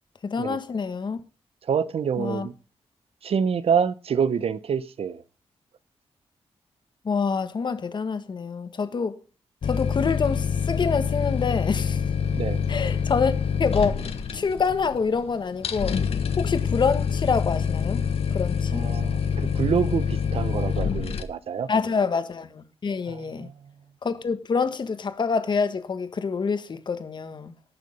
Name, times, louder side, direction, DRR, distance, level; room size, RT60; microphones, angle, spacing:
voice 1, 0.2-1.2 2.2-2.5 7.0-9.2 9.6-12.0 12.7-13.3 13.6-16.0 16.4-18.0 18.3-18.9 21.7-23.5 24.0-27.5, left 5 dB, 45° left, 1.5 m, -26 dB
voice 2, 1.6-2.5 3.2-5.2 12.3-12.6 18.7-21.7 23.1-23.5, right 7 dB, 65° right, 0.8 m, -27 dB
sound 1, 9.6-21.2, left 7 dB, 65° left, 1.4 m, -26 dB
17.5 x 6.6 x 5.3 m
wide cardioid pair, 120°, 11 cm